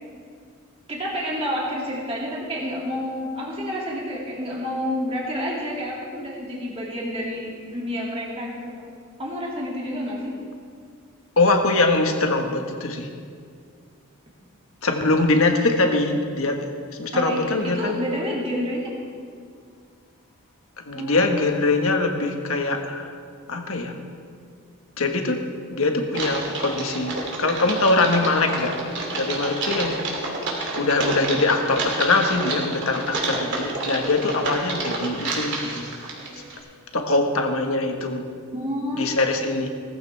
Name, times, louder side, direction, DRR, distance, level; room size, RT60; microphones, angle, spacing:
voice 1, 0.9-8.9 9.2-10.3 17.1-18.9 20.9-21.3 38.5-39.1, equal, 25° right, -4 dB, 2.4 m, -29 dB
voice 2, 11.4-13.1 14.8-18.0 20.9-23.1 23.5-23.9 25.0-25.4 25.7-30.1 30.7-35.9 36.9-38.3 38.9-39.7, left 2 dB, 65° left, 4 dB, 1.4 m, -22 dB
Typing, 26.1-36.6, right 2 dB, 55° right, 2.7 m, -29 dB
18.5 x 14.0 x 3.4 m, 2.1 s
head